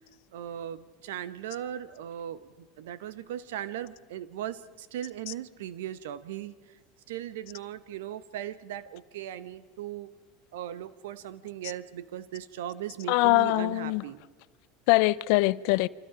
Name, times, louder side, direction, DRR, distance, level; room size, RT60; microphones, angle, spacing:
voice 1, 0.3-6.5 7.1-10.1 10.5-14.2, right 11 dB, 75° right, 1.1 m, -38 dB
voice 2, 13.1-14.0 14.9-15.9, left 22 dB, 65° left, 0.7 m, -23 dB
30.0 x 25.5 x 5.1 m
hypercardioid pair, 85°, 0 cm